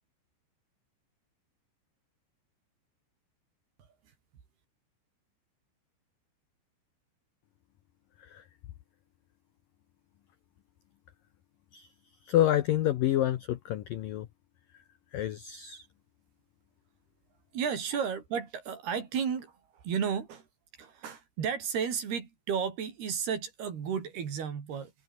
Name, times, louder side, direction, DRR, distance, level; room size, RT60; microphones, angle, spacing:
voice 1, 12.3-14.3 15.1-15.9, left 12 dB, 80° left, 2.0 m, -28 dB
voice 2, 17.5-20.5 20.8-24.9, right 7 dB, 55° right, 5.3 m, -33 dB
omnidirectional pair, 5.7 m